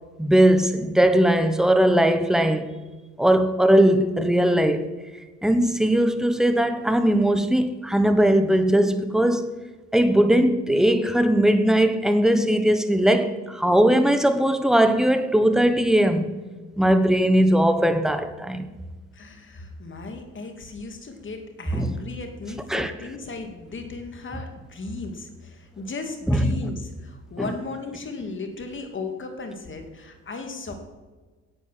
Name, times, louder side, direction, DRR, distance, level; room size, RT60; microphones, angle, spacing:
voice 1, 0.2-2.7 3.2-4.8 5.4-9.5 9.9-16.3 16.8-18.7 21.7-22.0 22.7-22.9 26.3-26.5 27.4-27.5, right 1 dB, ahead, 1.0 m, -19 dB
voice 2, 19.1-30.7, left 3 dB, 40° left, 2.2 m, -36 dB
8.8 x 8.5 x 7.3 m
cardioid pair, 90°, 30 cm